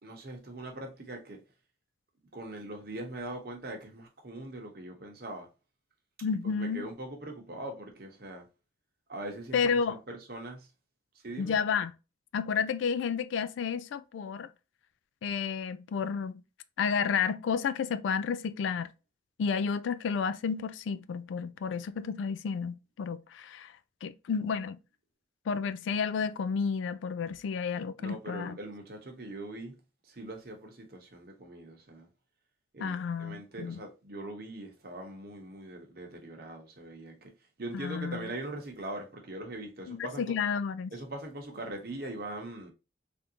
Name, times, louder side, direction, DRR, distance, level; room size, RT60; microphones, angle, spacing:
voice 1, 0.0-1.4 2.3-5.5 6.4-8.5 9.1-9.6 9.9-10.7 11.1-11.6 28.0-29.8 30.0-32.1 32.7-37.3 37.6-40.3 40.9-42.7, right 1 dB, 55° right, 0.9 m, -41 dB
voice 2, 6.2-6.9 9.5-10.0 11.4-11.9 12.3-14.5 15.2-16.4 16.8-18.9 19.4-23.7 24.0-24.8 25.5-28.6 32.8-33.8 37.7-38.2 39.9-40.9, left 6 dB, 85° left, 0.3 m, -31 dB
3.5 x 2.6 x 2.7 m
head